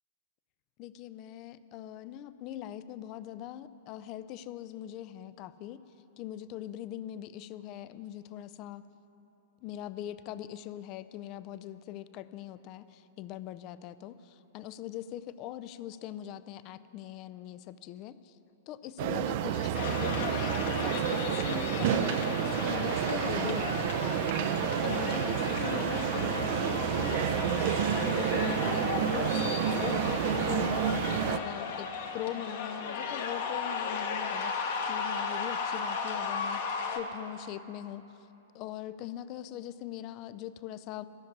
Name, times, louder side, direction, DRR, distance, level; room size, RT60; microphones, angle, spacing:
voice 1, 0.8-5.8 6.2-8.9 9.6-18.4 18.7-23.8 24.8-30.7 31.3-34.5 34.8-38.2 38.5-41.1, left 12 dB, 40° left, 14 dB, 0.4 m, -41 dB
sound 1, 19.0-31.4, right 9 dB, 50° right, 0.5 m, -30 dB
sound 2, 19.7-37.0, left 5 dB, 55° left, 1.3 m, -35 dB
13.0 x 7.1 x 9.7 m, 3.0 s
figure-of-eight pair, 105°, 0 cm